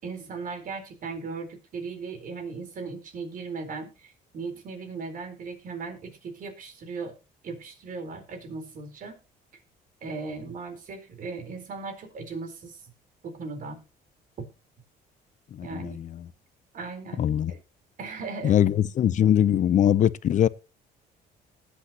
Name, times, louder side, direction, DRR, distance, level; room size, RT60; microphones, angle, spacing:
voice 1, 0.0-7.1 7.4-9.2 10.0-12.8 13.2-13.8 15.6-16.0 16.7-17.6 18.0-18.6 18.8-18.9, right 4 dB, 55° right, 4.2 m, -37 dB
voice 2, 15.6-16.1 17.2-17.5 18.4-20.5, left 10 dB, 45° left, 0.7 m, -22 dB
20.0 x 8.3 x 2.9 m
cardioid pair, 110°, 17 cm